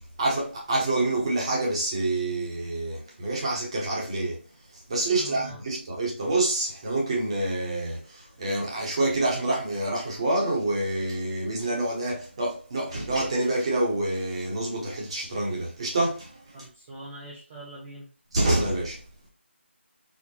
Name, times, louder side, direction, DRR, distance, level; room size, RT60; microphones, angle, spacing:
voice 1, 0.2-4.4 4.7-16.7 18.3-19.0, right 2 dB, 25° right, 1.0 m, -27 dB
voice 2, 5.2-5.6 16.5-18.1, right 2 dB, 10° right, 0.3 m, -43 dB
4.3 x 2.2 x 2.8 m
figure-of-eight pair, 170°, 7 cm